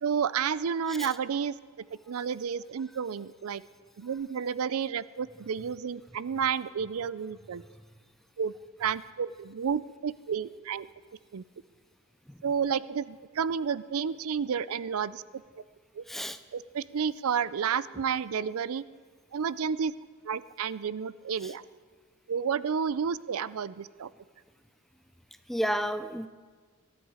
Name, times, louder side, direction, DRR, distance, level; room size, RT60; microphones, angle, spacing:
voice 1, 0.0-1.6 2.1-3.6 4.0-7.6 8.4-8.5 8.8-10.9 11.3-11.4 12.4-15.2 16.0-16.1 16.5-18.8 19.3-19.9 20.2-21.6 22.3-24.1, right 7 dB, 75° right, 17 dB, 0.4 m, -31 dB
voice 2, 16.1-16.4 21.4-21.5 25.5-26.3, equal, ahead, 10 dB, 0.5 m, -32 dB
22.0 x 13.0 x 4.9 m, 1.5 s
head